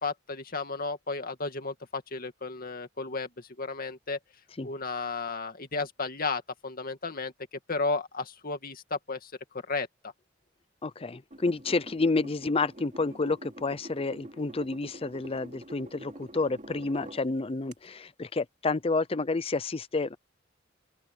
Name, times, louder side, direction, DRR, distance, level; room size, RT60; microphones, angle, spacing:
voice 1, 0.0-4.2 4.6-7.3 7.7-9.9, left 3 dB, 45° left, 2.4 m, -33 dB
voice 2, 10.8-20.2, left 3 dB, 30° left, 0.6 m, -30 dB
sound 1, 11.3-17.2 17.7-17.8, right 1 dB, 40° right, 2.8 m, -46 dB
open air
head